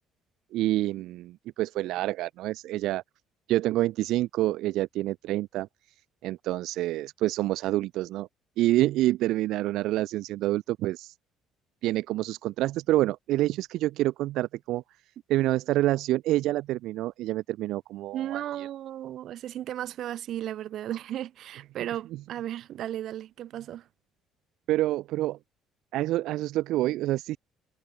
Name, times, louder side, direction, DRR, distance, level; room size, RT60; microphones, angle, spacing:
voice 1, 0.5-3.0 3.5-5.7 6.2-8.3 8.6-11.1 11.8-14.8 15.3-18.7 22.1-22.2 24.7-25.4 25.9-27.4, right 16 dB, 75° right, 0.6 m, -27 dB
voice 2, 18.1-23.9, right 12 dB, 60° right, 1.4 m, -35 dB
cardioid pair, 125°, 0 cm